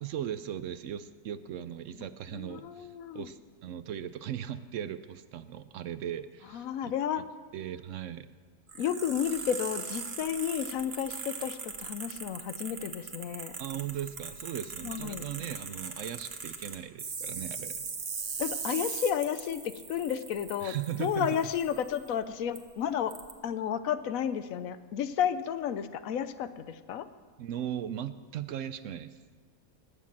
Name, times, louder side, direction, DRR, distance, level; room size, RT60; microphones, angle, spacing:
voice 1, 0.0-7.2 7.5-8.3 13.6-17.9 20.6-21.4 27.4-29.2, right 10 dB, 65° right, 12 dB, 0.9 m, -38 dB
voice 2, 2.3-3.3 6.5-7.2 8.8-13.6 14.8-15.2 18.4-23.1 23.4-27.1, left 9 dB, 75° left, 13 dB, 1.0 m, -32 dB
sound 1, 8.7-22.1 22.6-22.7 23.1-23.3, right 5 dB, 45° right, 1.2 m, -40 dB
19.5 x 6.6 x 7.4 m, 1.5 s
omnidirectional pair, 1.5 m